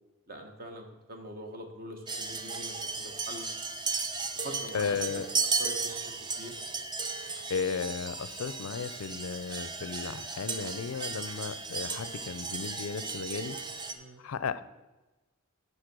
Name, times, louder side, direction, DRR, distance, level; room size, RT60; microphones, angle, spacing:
voice 1, 0.3-3.4 4.2-5.2 5.6-6.5 13.9-14.2, right 1 dB, 40° right, 4 dB, 1.3 m, -44 dB
sound 1, 2.1-13.9, right 4 dB, 20° right, 0.6 m, -35 dB
voice 2, 4.7-5.3 7.2-13.6 14.2-14.6, left 5 dB, 70° left, 15 dB, 0.5 m, -35 dB
11.5 x 4.2 x 6.0 m, 1.1 s
head